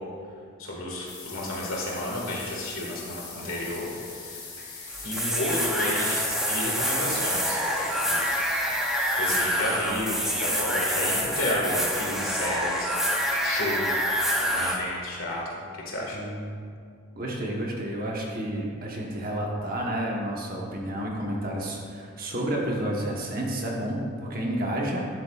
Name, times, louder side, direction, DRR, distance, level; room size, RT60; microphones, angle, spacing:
voice 1, 0.6-3.9 5.0-7.6 8.0-8.2 9.1-14.0 14.4-15.4 15.7-16.2, left 1 dB, 70° left, -3 dB, 1.8 m, -32 dB
sound 1, 1.1-9.4, left 4 dB, 45° left, 2.2 m, -41 dB
sound 2, 4.9-14.8, equal, ahead, 0.6 m, -26 dB
voice 2, 16.1-16.6 17.1-25.1, right 1 dB, 40° right, -2 dB, 1.2 m, -30 dB
11.0 x 7.5 x 2.4 m, 2.2 s
head